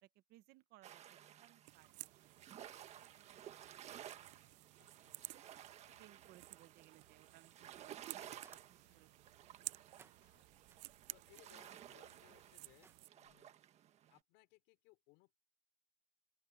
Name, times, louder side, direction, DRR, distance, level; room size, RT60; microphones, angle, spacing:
voice 1, 0.0-2.1 3.0-3.7 4.0-4.3 5.1-5.4 6.0-8.6 8.9-9.1 9.4-9.8, right 17 dB, 45° right, 1.2 m, -66 dB
sound 1, 0.8-14.2, right 11 dB, 30° right, 1.5 m, -56 dB
sound 2, 1.7-13.1, right 23 dB, 75° right, 0.5 m, -55 dB
voice 2, 4.8-6.0 8.3-9.2 9.9-10.5 11.1-13.5 14.1-15.4, left 25 dB, 55° left, 5.2 m, -69 dB
sound 3, 10.0-13.4, right 4 dB, 10° right, 1.1 m, -71 dB
open air
supercardioid pair, 155°, 21 cm